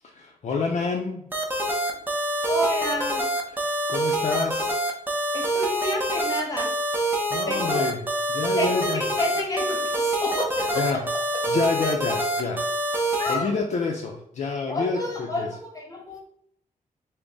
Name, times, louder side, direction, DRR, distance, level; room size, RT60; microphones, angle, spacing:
voice 1, 0.0-1.2 3.6-4.7 7.3-8.0 8.3-9.0 10.8-11.0 11.5-12.6 13.0-15.5, left 4 dB, 55° left, 1 dB, 0.5 m, -28 dB
sound 1, 1.3-13.3, right 1 dB, 15° right, 0.6 m, -26 dB
voice 2, 2.5-3.3 5.3-6.7 7.5-7.9 8.6-11.0 13.2-13.5 14.7-16.2, left 1 dB, 25° left, 1 dB, 0.8 m, -29 dB
3.4 x 2.1 x 3.9 m, 0.71 s
wide cardioid pair, 125°, 14 cm